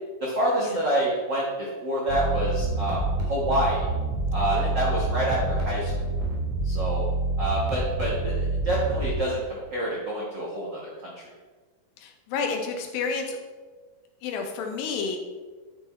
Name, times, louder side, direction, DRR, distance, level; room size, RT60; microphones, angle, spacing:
voice 1, 0.2-3.9 4.3-5.9 6.6-7.0 7.4-10.9, right 1 dB, 90° right, -4 dB, 0.9 m, -27 dB
sound 1, 2.1-9.1, right 2 dB, 65° right, 3.2 m, -27 dB
voice 2, 12.0-13.4 14.2-15.2, left 5 dB, 75° left, 4 dB, 2.5 m, -30 dB
9.3 x 6.0 x 4.3 m, 1.4 s
omnidirectional pair, 4.4 m